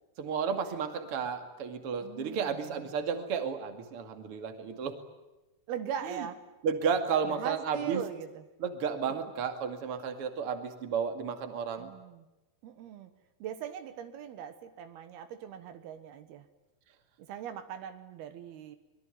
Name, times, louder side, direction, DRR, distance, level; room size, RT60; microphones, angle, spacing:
voice 1, 0.2-5.0 6.0-6.3 6.6-8.0 8.6-11.9, right 6 dB, 40° right, 6 dB, 2.7 m, -32 dB
voice 2, 2.0-2.8 5.7-6.4 7.3-8.4 11.8-12.3 12.6-13.1 13.4-16.4 17.2-18.8, right 8 dB, 75° right, 9 dB, 3.3 m, -40 dB
25.0 x 22.5 x 9.2 m, 1.0 s
omnidirectional pair, 4.6 m